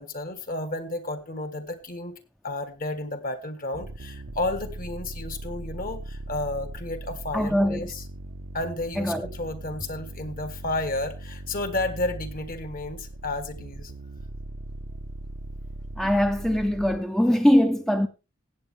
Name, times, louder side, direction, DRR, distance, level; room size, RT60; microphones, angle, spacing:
voice 1, 0.0-2.2 2.4-8.0 8.5-13.9, left 2 dB, 45° left, 1.5 m, -32 dB
sound 1, 3.7-17.0, right 2 dB, 90° right, 1.0 m, -39 dB
voice 2, 7.3-7.9 9.0-9.3 16.0-18.1, equal, ahead, 0.6 m, -22 dB
16.0 x 8.3 x 3.5 m
head